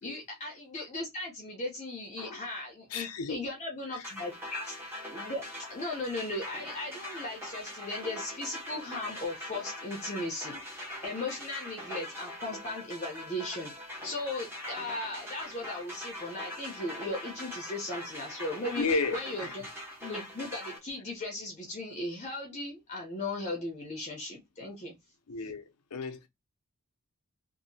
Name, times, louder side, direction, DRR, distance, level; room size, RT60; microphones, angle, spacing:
voice 1, 0.0-5.4 5.7-13.7 14.0-19.6 20.0-24.9, left 2 dB, 30° left, 0.7 m, -37 dB
voice 2, 2.9-3.4 3.9-4.1 18.8-19.5 25.3-25.6 25.9-26.3, left 3 dB, 85° left, 0.6 m, -33 dB
sound 1, 4.0-20.8, left 1 dB, 10° right, 0.9 m, -42 dB
2.8 x 2.6 x 2.6 m
head